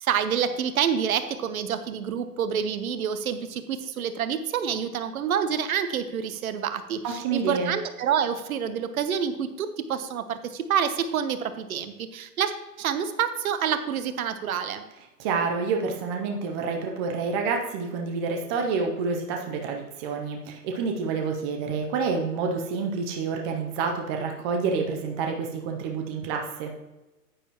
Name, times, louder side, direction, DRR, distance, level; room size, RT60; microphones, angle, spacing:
voice 1, 0.0-12.5 12.8-14.8, right 8 dB, 60° right, 10 dB, 1.0 m, -27 dB
voice 2, 7.0-7.7 15.2-26.7, right 4 dB, 15° right, 2 dB, 0.5 m, -28 dB
9.7 x 9.2 x 3.0 m, 1.0 s
hypercardioid pair, 130°, 48 cm